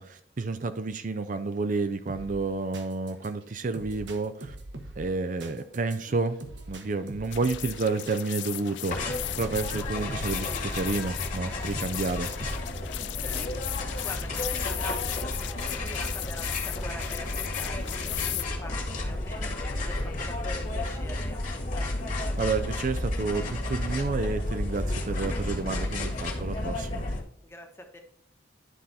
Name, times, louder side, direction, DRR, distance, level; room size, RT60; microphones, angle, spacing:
voice 1, 0.0-4.6 5.0-6.4 6.7-12.3 22.4-27.0, right 3 dB, 45° right, 9 dB, 0.5 m, -30 dB
sound 1, 2.1-11.3 11.7-12.8, right 1 dB, 70° right, 1.2 m, -44 dB
sound 2, 7.3-18.4, left 16 dB, 70° left, 0.3 m, -37 dB
sound 3, 8.9-27.2, left 2 dB, 45° left, 1.7 m, -32 dB
voice 2, 14.0-15.5 15.9-19.4 19.8-21.9 27.4-28.0, left 1 dB, 15° left, 3 dB, 1.1 m, -44 dB
11.0 x 3.9 x 4.1 m, 0.68 s
head